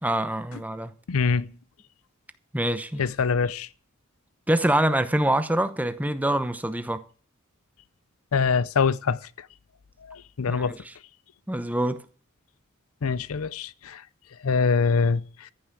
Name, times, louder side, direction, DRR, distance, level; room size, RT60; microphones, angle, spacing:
voice 1, 0.0-0.9 2.5-3.0 4.5-7.0 10.5-10.8 11.5-12.0, right 1 dB, 5° right, 0.8 m, -25 dB
voice 2, 1.1-1.5 3.0-3.7 8.3-9.5 10.0-10.8 13.0-14.0 14.4-15.5, left 5 dB, 80° left, 0.6 m, -24 dB
14.0 x 6.2 x 8.2 m
head